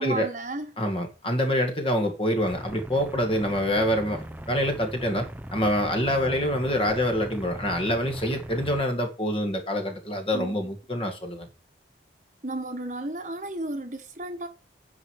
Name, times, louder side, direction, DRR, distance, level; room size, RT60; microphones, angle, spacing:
voice 1, 0.0-0.7 10.3-10.7 12.4-14.5, right 2 dB, 40° right, 1.3 m, -33 dB
voice 2, 0.8-5.3 5.5-11.5, equal, 30° left, 2.0 m, -26 dB
sound 1, 2.4-8.8, equal, 10° right, 0.5 m, -39 dB
9.6 x 4.9 x 7.6 m
head